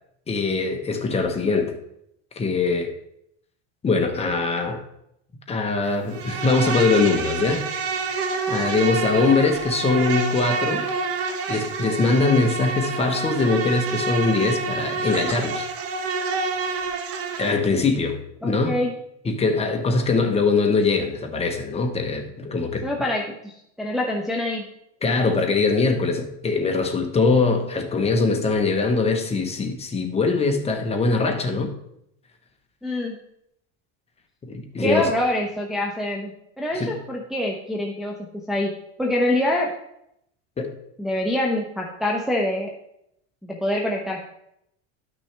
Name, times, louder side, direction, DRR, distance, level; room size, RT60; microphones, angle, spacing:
voice 1, 0.3-1.7 2.4-2.9 3.8-4.8 5.5-7.6 8.0-10.8 11.5-15.6 17.4-18.7 19.2-22.9 25.0-31.7 34.5-35.1 36.7-36.9 40.6-40.7, left 3 dB, 15° left, 4 dB, 1.1 m, -22 dB
Insect, 6.1-17.6, right 4 dB, 40° right, 1.0 m, -27 dB
voice 2, 18.4-18.9 22.8-24.7 32.8-33.2 34.8-39.7 41.0-42.7 43.4-44.2, left 1 dB, ahead, -2 dB, 0.8 m, -25 dB
11.5 x 6.2 x 3.4 m, 0.76 s
supercardioid pair, 135°, 35 cm